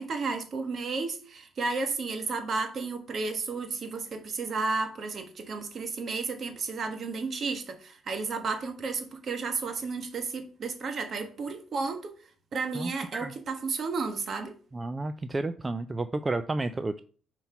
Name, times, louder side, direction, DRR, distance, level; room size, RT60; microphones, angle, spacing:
voice 1, 0.0-12.1 12.5-14.5, right 4 dB, 50° right, 1.4 m, -32 dB
voice 2, 12.7-13.3 14.7-17.0, right 2 dB, 25° right, 0.4 m, -31 dB
5.6 x 4.5 x 5.6 m
cardioid pair, 90°, 0 cm